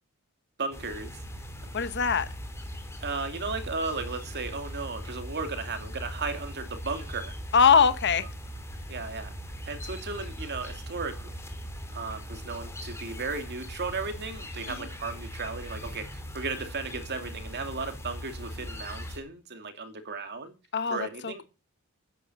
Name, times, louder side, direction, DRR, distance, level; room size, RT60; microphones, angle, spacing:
voice 1, 0.6-1.2 3.0-7.3 8.9-9.3 9.6-11.4 11.9-20.5 20.9-21.4, right 4 dB, 50° right, 2.7 m, -35 dB
sound 1, 0.7-19.2, equal, 10° left, 3.0 m, -40 dB
voice 2, 1.7-2.3 7.5-8.3 14.8-14.9 20.7-21.4, left 6 dB, 50° left, 1.0 m, -22 dB
13.5 x 10.0 x 6.3 m
head